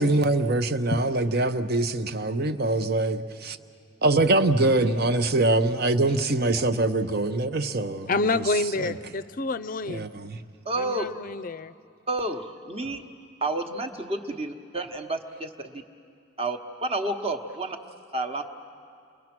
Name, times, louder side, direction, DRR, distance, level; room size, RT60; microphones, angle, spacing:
voice 1, 0.0-3.6 4.0-8.4 8.8-8.9 9.9-10.4, right 2 dB, 50° right, 10 dB, 0.8 m, -24 dB
voice 2, 8.1-10.1 10.8-11.7, left 3 dB, 45° left, 16 dB, 0.5 m, -28 dB
voice 3, 10.6-11.1 12.1-13.0 13.4-15.8 16.4-17.8 18.1-18.4, right 2 dB, 30° right, 4 dB, 1.2 m, -30 dB
29.5 x 22.5 x 6.1 m, 2.5 s
head